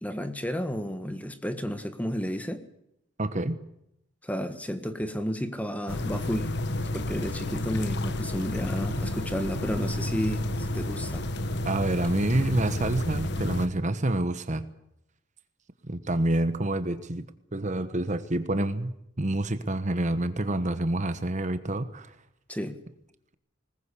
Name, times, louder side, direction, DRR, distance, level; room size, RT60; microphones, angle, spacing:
voice 1, 0.0-2.6 4.2-6.5 6.9-10.5 10.7-11.2 22.5-22.8, equal, 5° left, 9 dB, 1.5 m, -32 dB
voice 2, 3.2-3.6 11.6-14.7 15.9-17.2 17.5-22.1, right 1 dB, 40° right, 11 dB, 1.2 m, -27 dB
sound 1, 5.9-13.7, left 1 dB, 60° left, 1.4 m, -31 dB
20.5 x 20.0 x 8.4 m, 0.79 s
head